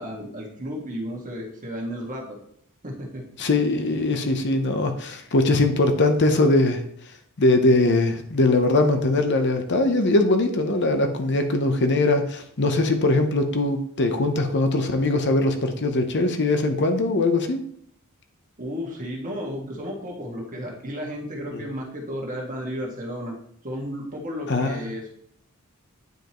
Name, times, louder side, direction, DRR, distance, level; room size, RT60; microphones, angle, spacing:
voice 1, 0.0-2.4 2.8-3.2 18.6-23.3 23.6-25.1, equal, 40° right, -1 dB, 1.7 m, -33 dB
voice 2, 3.4-6.8 7.4-17.6 21.5-21.6 24.5-24.8, left 2 dB, 55° left, 6 dB, 0.8 m, -21 dB
9.2 x 5.1 x 3.0 m, 0.66 s
head